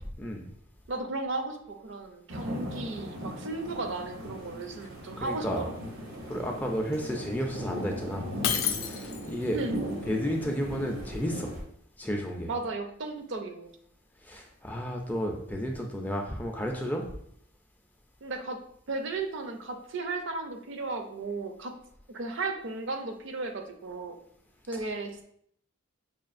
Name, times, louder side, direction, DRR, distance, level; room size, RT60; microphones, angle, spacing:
voice 1, 0.9-5.7 9.5-9.8 12.5-13.7 18.2-18.6 18.9-21.7 22.1-24.2 24.7-25.2, right 3 dB, 60° right, 5 dB, 0.5 m, -35 dB
sound 1, 2.3-11.6, equal, 90° right, 1.0 m, -39 dB
voice 2, 5.2-5.6 6.3-8.3 8.7-9.6 10.1-11.5 12.0-12.5 14.2-17.0, equal, 10° left, 1 dB, 0.3 m, -32 dB
Shatter, 8.4-9.5, left 9 dB, 80° left, 0.4 m, -30 dB
5.5 x 2.3 x 2.5 m, 0.67 s
head